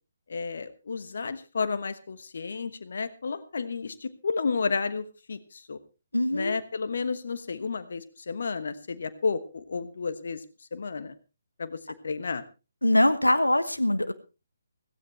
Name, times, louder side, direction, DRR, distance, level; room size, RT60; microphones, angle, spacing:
voice 1, 0.3-5.8 6.3-10.4 10.7-11.1 11.6-12.4, left 4 dB, 55° left, 12 dB, 1.2 m, -32 dB
voice 2, 6.1-6.6 12.8-14.1, left 1 dB, 80° left, 11 dB, 1.1 m, -23 dB
16.5 x 16.5 x 3.3 m, 0.31 s
figure-of-eight pair, 140°, 0 cm